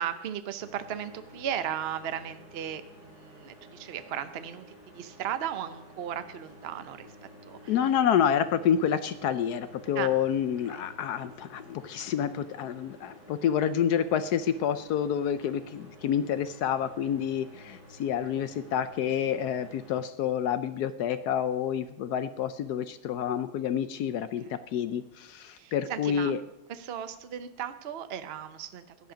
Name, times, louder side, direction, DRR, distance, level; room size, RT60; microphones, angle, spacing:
voice 1, 0.0-7.7 10.0-10.2 10.7-10.8 24.4-24.5 25.6-26.3 26.7-29.1, right 9 dB, 65° right, 11 dB, 0.6 m, -36 dB
sound 1, 0.6-19.9, left 1 dB, 50° left, 6.2 m, -52 dB
voice 2, 7.7-26.4, left 9 dB, 75° left, 12 dB, 0.9 m, -28 dB
16.5 x 10.5 x 5.0 m, 0.92 s
omnidirectional pair, 2.2 m